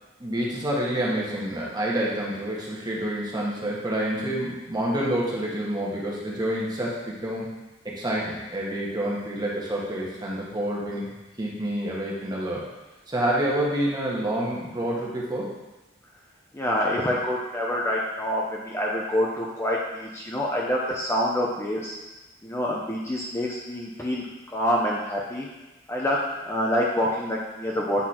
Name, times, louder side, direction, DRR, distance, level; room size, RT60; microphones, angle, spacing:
voice 1, 0.2-7.5 7.8-11.1 11.4-12.6 13.1-15.5, right 1 dB, 20° right, -4 dB, 1.4 m, -28 dB
voice 2, 16.5-21.9 22.4-24.3 24.5-25.5 25.9-28.0, equal, 15° left, -4 dB, 0.6 m, -26 dB
8.3 x 4.0 x 4.3 m, 1.1 s
head